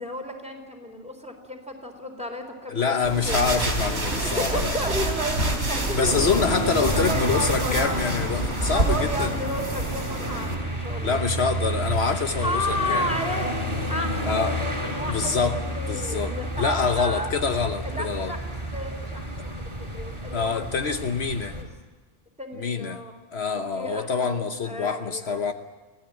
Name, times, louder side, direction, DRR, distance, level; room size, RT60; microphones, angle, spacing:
voice 1, 0.0-2.9 3.3-3.4 4.4-8.1 8.7-11.2 12.4-14.6 14.9-17.3 17.8-20.6 21.5-21.7 22.4-23.1 23.5-25.4, equal, 5° right, 3 dB, 3.9 m, -32 dB
voice 2, 2.7-4.7 5.9-9.3 11.0-13.1 14.3-14.5 15.1-15.6 15.9-18.3 20.3-21.5 22.5-23.0 23.3-25.5, left 5 dB, 65° left, 7 dB, 1.3 m, -26 dB
sound 1, 3.0-10.5, right 2 dB, 75° right, 4.0 m, -28 dB
sound 2, 6.0-21.6, equal, 25° right, 5.2 m, -30 dB
25.0 x 16.5 x 9.1 m, 1.3 s
omnidirectional pair, 1.2 m